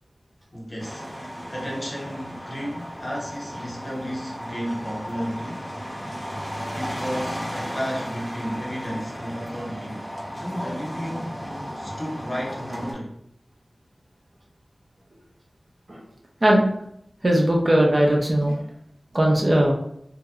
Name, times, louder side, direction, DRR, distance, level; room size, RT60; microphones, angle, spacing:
voice 1, 0.5-1.1 1.5-5.7 6.7-10.1 10.4-11.4 11.7-13.1, equal, 35° left, 0.8 m, -33 dB
sound 1, 0.8-12.9, equal, 5° left, 0.9 m, -34 dB
voice 2, 17.2-18.6 19.1-19.7, right 1 dB, 35° right, 0.6 m, -18 dB
3.0 x 2.8 x 2.3 m
wide cardioid pair, 75°, 0 cm